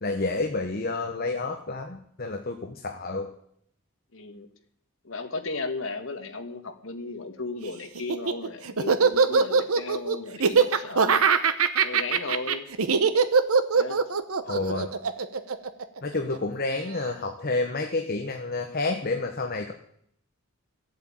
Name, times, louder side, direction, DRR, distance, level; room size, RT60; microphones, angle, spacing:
voice 1, 0.0-3.3 14.4-14.9 16.0-19.7, left 3 dB, 45° left, 4 dB, 1.1 m, -29 dB
voice 2, 4.1-4.5 5.0-11.2 11.8-12.7 13.7-14.0, left 3 dB, 65° left, 6 dB, 1.6 m, -35 dB
Laughter, 8.0-16.4, right 5 dB, 80° right, 0.9 m, -22 dB
14.5 x 8.0 x 8.7 m, 0.71 s
head